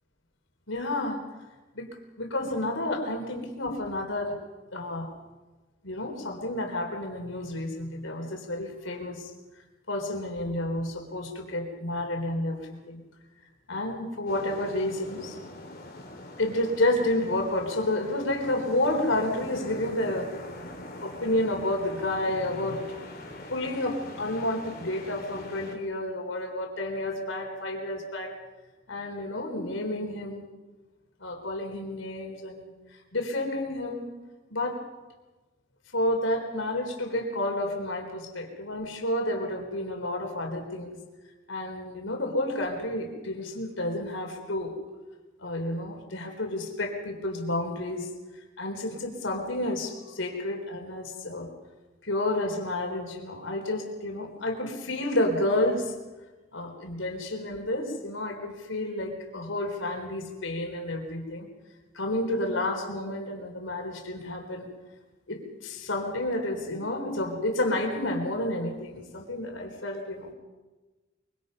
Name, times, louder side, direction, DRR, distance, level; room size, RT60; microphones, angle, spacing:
voice 1, 0.7-1.2 1.7-1.9 2.2-4.4 4.7-5.1 5.8-9.3 9.9-13.0 13.7-15.4 16.4-20.6 21.0-22.8 23.5-28.3 28.9-30.4 31.2-34.1 34.5-34.8 35.9-41.0 41.5-44.7 45.4-48.1 48.6-51.5 52.0-55.9 56.5-61.5 61.9-64.7 65.3-70.3, left 1 dB, 85° left, 2 dB, 4.0 m, -30 dB
sound 1, 14.3-25.7, left 1 dB, 50° left, 3.8 m, -43 dB
24.5 x 23.5 x 5.5 m, 1.2 s
head